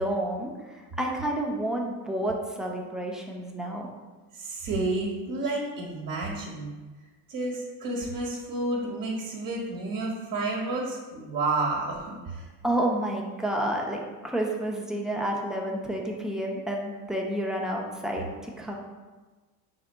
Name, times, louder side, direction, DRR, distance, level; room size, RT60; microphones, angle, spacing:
voice 1, 0.0-3.9 12.6-18.8, right 1 dB, ahead, -1 dB, 0.5 m, -30 dB
voice 2, 4.3-6.7 7.3-12.5, right 2 dB, 45° right, -3 dB, 1.1 m, -30 dB
4.9 x 3.9 x 2.2 m, 1.3 s
hypercardioid pair, 75°, 48 cm